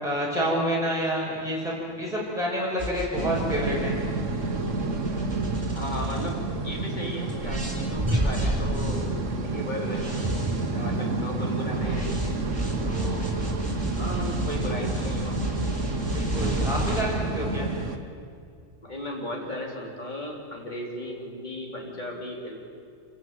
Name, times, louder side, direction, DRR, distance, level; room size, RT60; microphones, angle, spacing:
voice 1, 0.0-4.0 16.1-17.7, equal, 5° right, -5 dB, 5.3 m, -28 dB
sound 1, 2.8-6.8 7.3-17.0, right 1 dB, 20° right, 6.1 m, -31 dB
sound 2, 3.1-18.0, right 3 dB, 85° right, 1.7 m, -30 dB
voice 2, 5.7-10.1 10.7-12.4 12.8-13.5 14.0-15.5 18.8-22.6, equal, 40° left, 0 dB, 3.6 m, -36 dB
26.5 x 15.5 x 9.0 m, 2.2 s
omnidirectional pair, 1.2 m